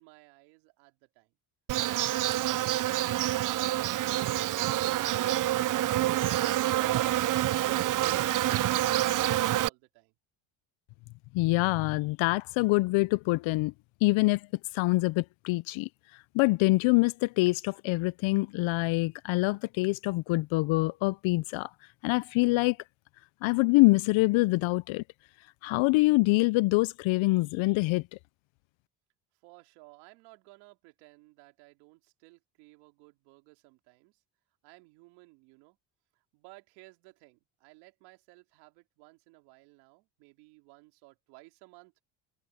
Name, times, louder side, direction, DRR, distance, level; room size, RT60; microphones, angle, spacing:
voice 1, 0.0-1.3 29.4-34.2 34.6-35.8 36.1-42.0, right 25 dB, 90° right, 3.3 m, -57 dB
Insect, 1.7-9.7, right 14 dB, 40° right, 0.5 m, -27 dB
voice 2, 11.3-13.7 14.0-14.5 14.7-15.9 16.3-21.7 22.0-22.8 23.4-25.0 25.6-28.0, left 22 dB, 70° left, 0.6 m, -25 dB
supercardioid pair, 80°, 49 cm